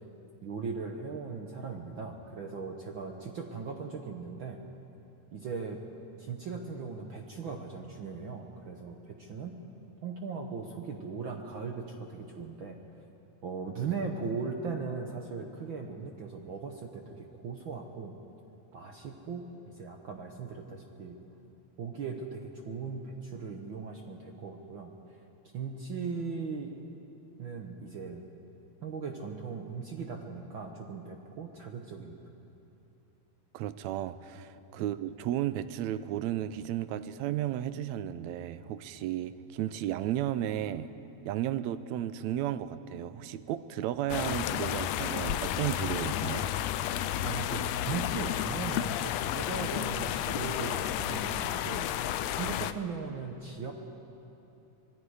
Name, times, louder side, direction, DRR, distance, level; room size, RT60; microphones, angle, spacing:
voice 1, 0.4-4.6 5.3-5.8 6.2-9.6 10.0-12.8 13.4-18.1 18.7-21.1 21.8-24.9 25.5-26.7 27.4-28.2 28.8-32.2 34.7-34.8 47.2-51.9 52.4-53.7, right 5 dB, 60° right, 3 dB, 1.3 m, -38 dB
voice 2, 33.5-40.9 41.3-46.5, right 12 dB, 80° right, 13 dB, 1.8 m, -33 dB
sound 1, 44.1-52.7, left 12 dB, 80° left, 1.5 m, -32 dB
25.5 x 21.0 x 4.9 m, 2.9 s
omnidirectional pair, 3.6 m